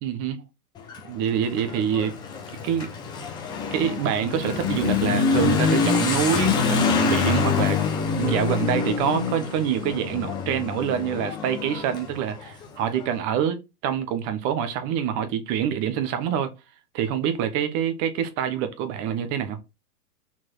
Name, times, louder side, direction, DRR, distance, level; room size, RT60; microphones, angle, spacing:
voice 1, 0.0-0.4 1.1-2.1 2.6-2.9 3.7-7.8 8.2-16.5 16.9-19.6, right 9 dB, 25° right, 1.1 m, -26 dB
Motorcycle / Accelerating revving vroom, 0.8-13.1, left 5 dB, 10° left, 0.6 m, -25 dB
6.0 x 4.4 x 4.5 m
hypercardioid pair, 150°, 48 cm